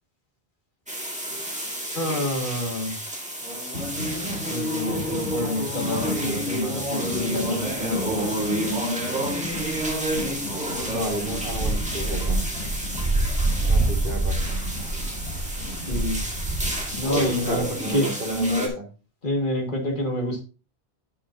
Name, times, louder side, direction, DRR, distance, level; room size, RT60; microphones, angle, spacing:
sound 1, 0.9-18.7, equal, 5° right, 1.6 m, -30 dB
voice 1, 1.9-3.0 4.5-8.8 15.9-16.2 17.0-18.1 19.2-20.4, left 1 dB, 50° left, 0 dB, 2.1 m, -28 dB
sound 2, 3.7-17.6, left 1 dB, 75° left, 3.6 m, -37 dB
sound 3, 7.5-18.5, right 2 dB, 25° right, 2.1 m, -29 dB
voice 2, 10.9-12.4 13.7-14.6 17.1-18.9, equal, 55° right, 3 dB, 1.7 m, -32 dB
10.0 x 6.6 x 2.7 m, 0.33 s
omnidirectional pair, 1.1 m